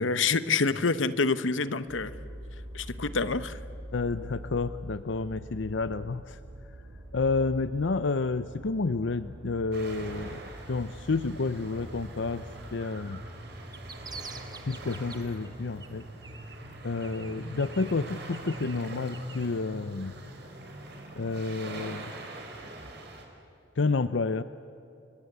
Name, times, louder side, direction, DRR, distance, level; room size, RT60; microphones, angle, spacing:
voice 1, 0.0-2.2 2.7-3.6, left 4 dB, 90° left, 14 dB, 1.1 m, -27 dB
sound 1, 1.9-21.4, equal, 75° right, 6.6 m, -44 dB
voice 2, 3.9-6.4 7.1-10.4 10.7-12.4 12.7-13.2 14.7-16.0 16.8-20.1 21.2-22.1 23.8-24.4, left 3 dB, 70° left, 13 dB, 0.6 m, -30 dB
sound 2, 9.7-23.2, right 2 dB, 60° right, 4.8 m, -45 dB
sound 3, 13.5-15.5 15.8-16.7 17.0-19.5, right 5 dB, 20° right, 1.5 m, -47 dB
30.0 x 23.0 x 8.1 m, 2.9 s
head